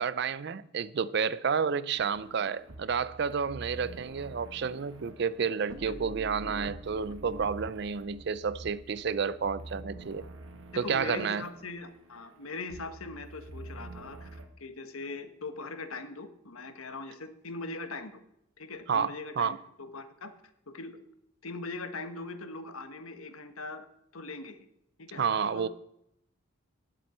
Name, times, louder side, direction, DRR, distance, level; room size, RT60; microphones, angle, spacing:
voice 1, 0.0-10.2 10.8-11.4 18.9-19.6 25.2-25.7, right 6 dB, 55° right, 0.4 m, -30 dB
sound 1, 2.0-14.5, right 1 dB, 70° right, 1.3 m, -46 dB
voice 2, 10.7-18.2 18.6-20.3 20.7-21.0 21.4-23.9 24.1-24.7 25.0-25.2 25.5-25.7, left 3 dB, 90° left, 1.3 m, -41 dB
18.0 x 7.7 x 4.3 m
head